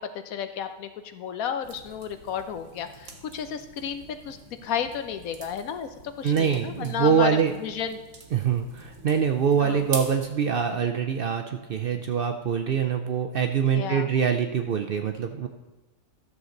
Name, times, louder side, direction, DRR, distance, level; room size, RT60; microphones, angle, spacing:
voice 1, 0.1-5.9 6.2-7.3 7.6-8.0 9.6-9.9 13.7-14.1, left 8 dB, 85° left, 10 dB, 1.2 m, -32 dB
sound 1, 1.6-10.2, right 4 dB, 75° right, 1.6 m, -44 dB
voice 2, 6.2-7.5 8.3-15.5, right 7 dB, 60° right, 6 dB, 0.6 m, -24 dB
12.5 x 7.1 x 3.9 m, 1.1 s
omnidirectional pair, 1.4 m